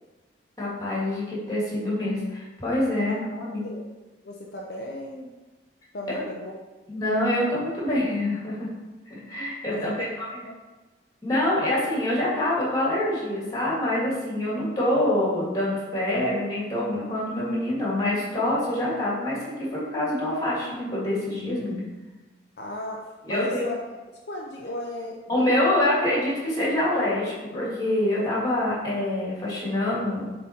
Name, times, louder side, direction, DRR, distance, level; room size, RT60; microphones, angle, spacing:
voice 1, 0.6-3.6 6.1-6.2 6.9-8.7 9.1-10.1 11.2-21.8 23.2-23.6 25.3-30.2, left 1 dB, 20° left, -6 dB, 2.2 m, -26 dB
voice 2, 4.2-5.3 5.9-6.5 9.7-10.1 10.4-10.5 22.6-24.0 24.3-25.5, left 1 dB, 55° left, -1 dB, 0.7 m, -36 dB
7.4 x 3.9 x 4.3 m, 1.2 s
head